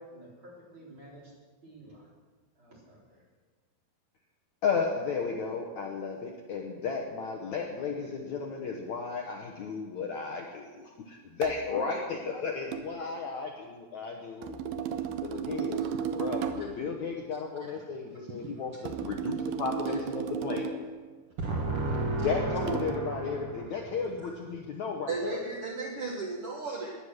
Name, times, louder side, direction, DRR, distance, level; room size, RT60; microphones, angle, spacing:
voice 1, 0.0-1.3 1.6-2.1 2.5-3.3, right 1 dB, 30° right, -5 dB, 5.1 m, -51 dB
voice 2, 4.6-14.6 15.2-15.8 16.2-20.9 22.2-25.4, left 5 dB, 65° left, 1 dB, 2.0 m, -34 dB
sound 1, 11.4-11.7 12.7-12.9 14.4-16.8 18.9-20.9 22.7-23.0, right 8 dB, 80° right, 2.7 m, -34 dB
voice 3, 15.6-16.1 16.6-16.7 17.6-17.7 18.4-18.6 21.4-23.8 24.2-24.3 25.1-27.0, right 2 dB, 60° right, -1 dB, 1.5 m, -34 dB
17.5 x 10.5 x 6.5 m, 1.4 s
omnidirectional pair, 4.5 m